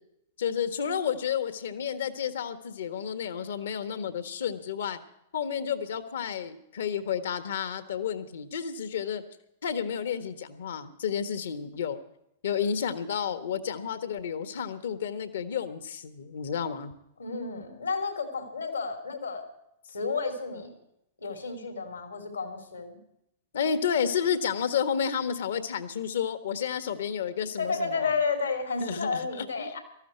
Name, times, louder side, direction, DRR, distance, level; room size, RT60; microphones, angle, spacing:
voice 1, 0.4-5.0 5.3-9.2 9.6-12.0 12.4-16.9 23.5-28.1 28.8-29.7, left 7 dB, 65° left, 10 dB, 1.5 m, -31 dB
voice 2, 17.2-19.4 19.9-20.8 21.2-23.0 27.6-29.8, left 4 dB, 85° left, 5 dB, 3.6 m, -31 dB
19.0 x 14.0 x 4.6 m, 0.79 s
figure-of-eight pair, 100°, 0 cm